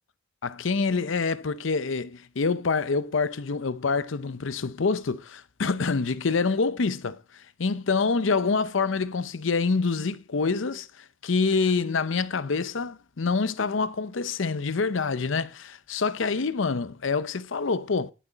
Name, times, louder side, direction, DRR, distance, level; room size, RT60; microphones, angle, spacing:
voice 1, 0.4-18.1, left 4 dB, 80° left, 0.7 m, -26 dB
11.0 x 8.3 x 4.0 m
head